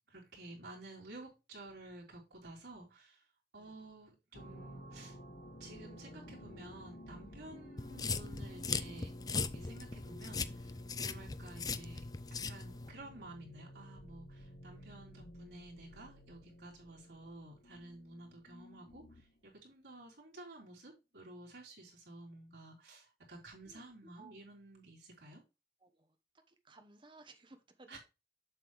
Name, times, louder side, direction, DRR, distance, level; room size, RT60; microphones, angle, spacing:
voice 1, 0.1-3.2 3.5-5.2 5.6-9.1 9.5-12.0 12.5-25.4 27.9-28.0, right 2 dB, 80° right, 3.4 m, -52 dB
sound 1, 4.3-19.4, equal, 50° left, 1.6 m, -53 dB
sound 2, 7.8-12.9, left 4 dB, 20° left, 0.4 m, -39 dB
voice 2, 24.2-24.5 25.8-26.2 26.5-28.0, right 3 dB, 30° right, 1.0 m, -59 dB
7.6 x 6.7 x 3.2 m
head